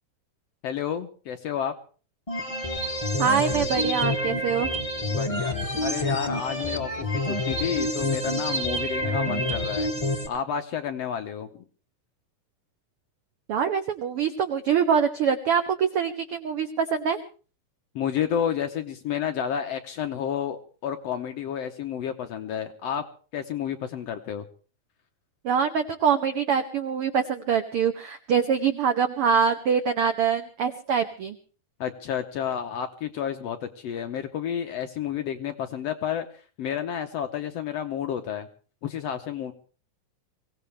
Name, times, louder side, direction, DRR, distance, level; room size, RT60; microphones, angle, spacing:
voice 1, 0.6-1.7 5.1-5.5 5.8-9.9 10.3-11.6 17.9-23.0 23.3-24.4 31.8-36.3 36.6-38.5 38.8-39.5, left 8 dB, 70° left, 7 dB, 1.6 m, -30 dB
sound 1, 2.3-10.3, left 1 dB, 20° left, 1.0 m, -28 dB
voice 2, 3.2-4.7 13.5-17.2 25.4-31.4, right 7 dB, 80° right, 9 dB, 1.2 m, -24 dB
23.5 x 17.5 x 3.4 m, 0.39 s
omnidirectional pair, 3.7 m